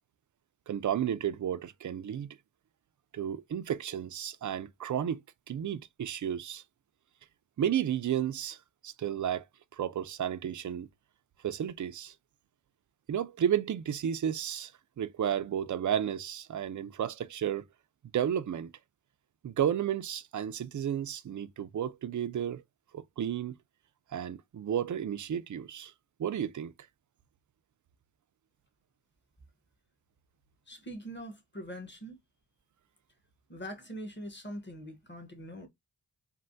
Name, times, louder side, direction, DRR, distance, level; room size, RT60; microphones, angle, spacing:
voice 1, 0.7-2.3 3.1-5.2 5.5-6.6 7.6-8.6 8.8-9.4 9.7-10.9 11.4-12.1 13.1-14.7 15.0-17.7 18.1-18.7 19.4-22.6 22.9-23.6 24.1-25.9 26.2-26.7, right 9 dB, 45° right, 0.4 m, -32 dB
voice 2, 30.7-32.2 33.5-35.7, equal, 25° left, 1.1 m, -43 dB
3.3 x 2.2 x 2.5 m
cardioid pair, 50°, 45 cm